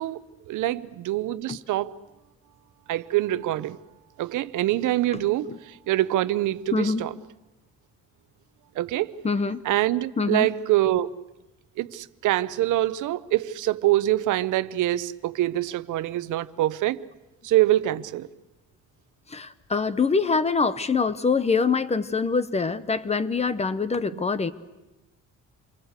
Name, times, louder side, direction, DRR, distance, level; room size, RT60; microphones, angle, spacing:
voice 1, 0.0-1.9 2.9-3.8 4.2-7.1 8.8-9.2 9.6-11.1 11.8-17.0 17.4-18.3 24.1-24.2, right 15 dB, 85° right, 0.8 m, -25 dB
voice 2, 5.1-5.6 6.7-7.0 9.2-9.6 10.2-10.5 19.3-24.5, left 4 dB, 20° left, 0.9 m, -25 dB
27.5 x 23.5 x 8.2 m
cardioid pair, 145°, 30 cm